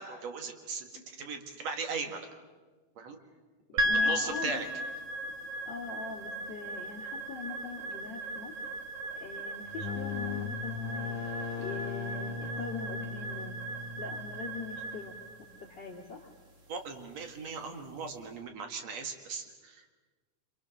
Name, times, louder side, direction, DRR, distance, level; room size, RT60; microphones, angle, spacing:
voice 1, 0.0-2.3 3.0-3.2 3.7-4.7 16.7-19.9, right 5 dB, 60° right, 5 dB, 2.9 m, -38 dB
voice 2, 3.8-4.6 5.4-8.5 9.2-11.2 11.6-13.6 14.0-15.2 15.6-16.3, left 5 dB, 40° left, -1 dB, 2.5 m, -42 dB
sound 1, 3.8-18.1, equal, 30° right, 1.9 m, -37 dB
sound 2, 9.6-15.2, left 5 dB, 60° left, 1.6 m, -39 dB
28.5 x 26.0 x 6.5 m, 1.4 s
omnidirectional pair, 3.6 m